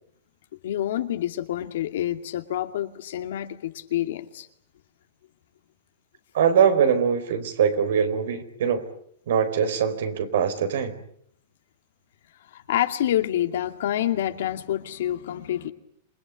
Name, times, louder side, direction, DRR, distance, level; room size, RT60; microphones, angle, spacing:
voice 1, 0.6-4.5 12.5-15.7, left 12 dB, 75° left, 7 dB, 2.4 m, -27 dB
voice 2, 6.3-8.8 9.3-10.9, right 7 dB, 80° right, 9 dB, 4.3 m, -22 dB
27.5 x 21.0 x 9.3 m, 0.69 s
supercardioid pair, 145°, 0 cm